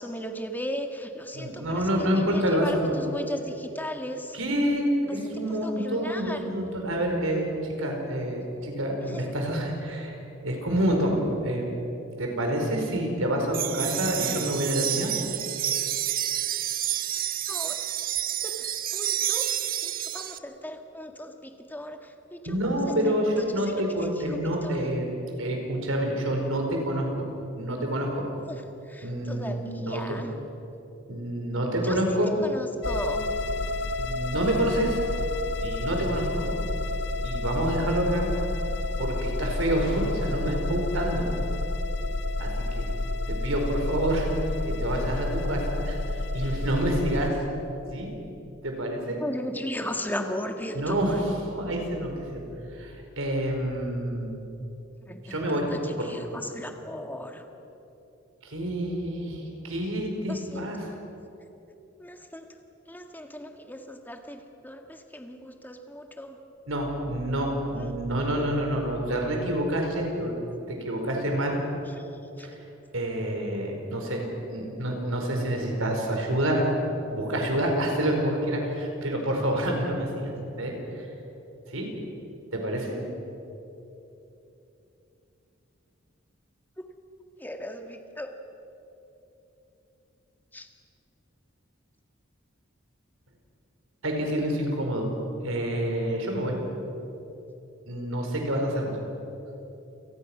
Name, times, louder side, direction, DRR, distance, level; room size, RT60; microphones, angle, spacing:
voice 1, 0.0-4.4 5.1-5.2 5.5-6.6 9.0-9.3 17.5-18.1 18.4-23.1 23.6-24.9 28.5-30.4 31.8-32.0 32.4-33.4 49.2-51.2 55.1-57.4 60.3-61.0 62.0-62.5 62.9-66.4 67.7-67.9 72.0-72.5 86.8-86.9 87.4-88.3 90.5-90.7, equal, 10° left, 5 dB, 1.7 m, -37 dB
voice 2, 1.3-2.9 4.3-7.5 7.8-10.2 10.4-11.1 11.4-11.8 12.2-15.1 22.4-25.1 25.4-27.3 27.6-28.2 29.0-30.2 31.1-32.3 34.0-35.0 35.6-36.5 37.2-38.3 39.0-41.2 42.4-42.5 42.7-42.9 43.3-44.3 44.6-47.4 47.9-48.1 48.6-49.2 50.7-51.2 51.5-52.4 52.7-54.3 55.3-55.6 56.0-56.4 58.4-60.8 66.7-70.3 70.7-71.6 72.4-72.5 72.9-74.3 74.5-76.6 77.1-80.3 80.6-81.1 81.7-81.9 82.5-82.9 94.0-95.1 95.4-96.6 97.9-98.9, right 1 dB, 90° right, 2 dB, 4.8 m, -28 dB
sound 1, 13.5-20.4, right 12 dB, 45° right, 0.6 m, -29 dB
sound 2, 32.8-47.3, left 2 dB, 65° left, 1.1 m, -30 dB
28.5 x 19.0 x 6.1 m, 3.0 s
head